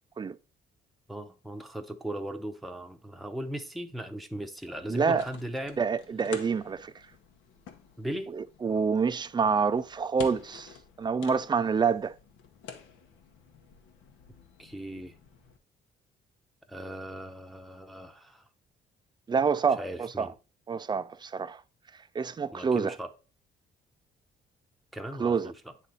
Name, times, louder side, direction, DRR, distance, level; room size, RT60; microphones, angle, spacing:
voice 1, 1.1-5.8 8.0-8.3 14.6-15.1 16.7-18.4 19.8-20.3 22.5-23.1 24.9-25.5, right 1 dB, ahead, 0.7 m, -38 dB
sound 1, 4.7-15.6, left 6 dB, 90° left, 0.9 m, -49 dB
voice 2, 4.9-5.3 5.8-6.9 8.3-10.7 11.0-12.2 19.3-20.3 20.7-21.6 22.1-22.9 25.2-25.5, right 5 dB, 20° right, 0.3 m, -27 dB
8.4 x 3.3 x 3.9 m
cardioid pair, 90°, 20 cm